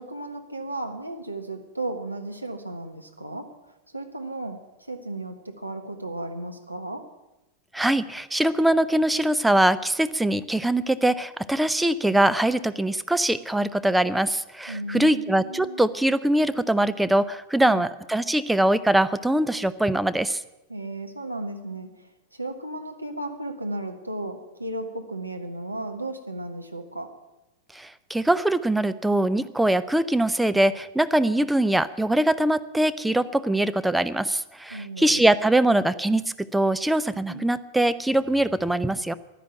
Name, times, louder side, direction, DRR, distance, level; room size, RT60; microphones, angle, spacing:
voice 1, 0.0-3.5 3.9-7.1 14.7-15.9 17.6-17.8 20.7-27.1 34.7-35.3 37.3-37.5, right 2 dB, 85° right, 4 dB, 1.3 m, -35 dB
voice 2, 7.7-20.4 27.7-39.1, right 1 dB, 5° right, 12 dB, 0.6 m, -22 dB
11.5 x 10.5 x 9.0 m, 0.97 s
figure-of-eight pair, 90°, 0 cm